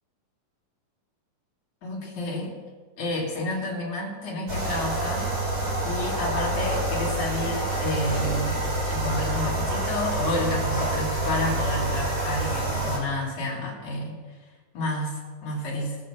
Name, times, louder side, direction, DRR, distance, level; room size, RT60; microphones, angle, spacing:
voice 1, 1.8-2.5 3.0-5.3 5.8-8.6 8.9-14.2 14.7-16.0, left 1 dB, 65° left, -3 dB, 4.4 m, -30 dB
sound 1, 4.5-13.0, right 2 dB, 50° right, 5.7 m, -27 dB
19.5 x 6.6 x 7.4 m, 1.5 s
omnidirectional pair, 3.7 m